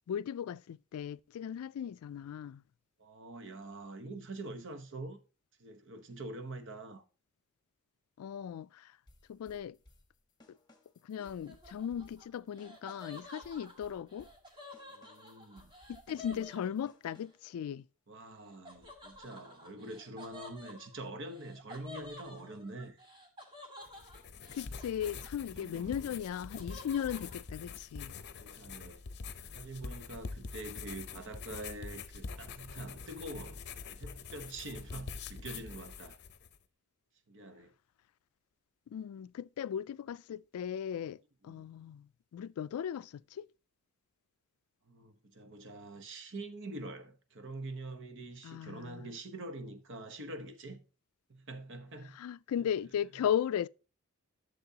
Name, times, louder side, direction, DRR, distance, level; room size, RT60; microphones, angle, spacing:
voice 1, 0.1-2.6 8.2-8.9 9.3-9.8 11.0-14.3 15.9-17.8 24.5-28.2 38.9-43.5 48.4-49.0 52.2-53.7, left 9 dB, 75° left, 0.3 m, -37 dB
voice 2, 3.0-5.2 5.6-7.0 14.9-15.7 16.1-16.7 18.1-23.0 25.5-26.1 28.4-29.0 29.5-33.6 33.9-36.2 37.3-37.7 41.4-41.7 44.9-50.8 51.3-52.2, right 2 dB, 60° right, 1.0 m, -45 dB
sound 1, 9.1-17.6, left 1 dB, 20° left, 1.2 m, -63 dB
Laughter, 11.2-17.2 18.6-25.6 25.9-27.4, left 2 dB, 20° right, 1.7 m, -52 dB
sound 2, 23.9-36.6, left 5 dB, 50° left, 0.7 m, -45 dB
12.0 x 6.7 x 2.8 m
head